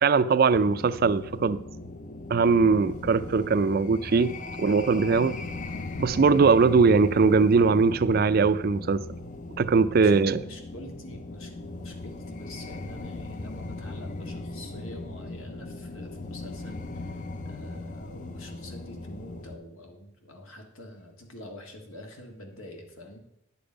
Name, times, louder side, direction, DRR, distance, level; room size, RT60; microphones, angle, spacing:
voice 1, 0.0-1.6 2.3-5.4 6.0-9.0 9.6-10.4, right 4 dB, 45° right, 0.4 m, -21 dB
sound 1, 0.5-19.6, left 2 dB, 40° left, 0.5 m, -38 dB
voice 2, 10.0-23.2, left 1 dB, 85° left, 1.9 m, -46 dB
10.5 x 6.9 x 5.1 m
head